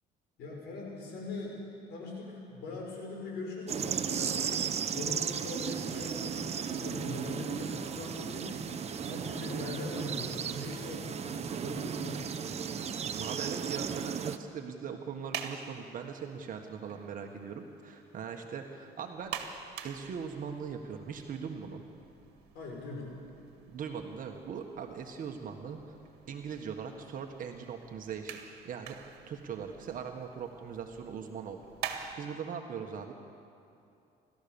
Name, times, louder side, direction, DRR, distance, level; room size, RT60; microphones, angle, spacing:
voice 1, 0.4-1.5 1.9-12.4 22.5-23.1, left 3 dB, 75° left, -1 dB, 6.3 m, -41 dB
sound 1, 3.7-14.4, right 7 dB, 40° right, 1.0 m, -35 dB
voice 2, 13.1-19.4 19.8-21.8 23.7-25.8 26.3-28.4 28.6-29.0 29.3-31.6 31.8-33.1, right 6 dB, 55° right, 3 dB, 1.6 m, -40 dB
sound 2, 15.0-32.1, right 8 dB, 75° right, 1.8 m, -47 dB
29.0 x 13.5 x 7.1 m, 2.6 s
cardioid pair, 110°, 17 cm